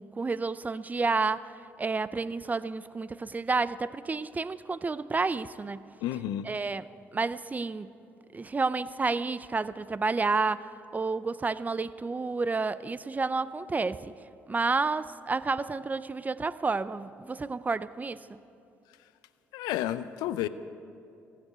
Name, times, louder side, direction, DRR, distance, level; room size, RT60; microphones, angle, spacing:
voice 1, 0.0-1.5 1.8-5.9 6.4-6.9 7.1-7.9 8.3-14.1 14.5-18.4, right 4 dB, 25° right, 16 dB, 0.5 m, -30 dB
voice 2, 6.0-6.5 19.5-20.5, left 12 dB, 80° left, 13 dB, 0.4 m, -31 dB
15.5 x 6.8 x 9.3 m, 2.6 s
hypercardioid pair, 55°, 7 cm